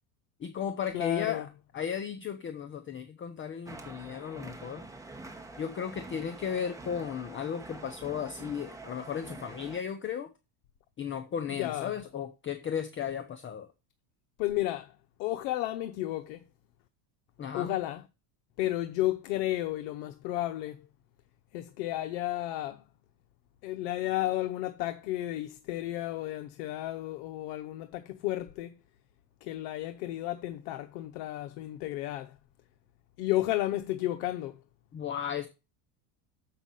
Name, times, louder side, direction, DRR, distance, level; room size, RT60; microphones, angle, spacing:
voice 1, 0.4-1.5 1.7-4.9 5.6-10.3 11.0-13.7 17.4-17.8 34.9-35.5, left 8 dB, 25° left, 0.7 m, -35 dB
voice 2, 0.9-1.5 11.5-11.9 14.4-16.4 17.5-18.1 18.6-20.9 21.5-22.8 23.6-28.7 29.4-32.4 33.2-34.6, left 15 dB, 80° left, 0.9 m, -33 dB
sound 1, 3.7-9.8, right 2 dB, 5° right, 1.2 m, -46 dB
7.2 x 5.9 x 5.4 m
cardioid pair, 135°, 49 cm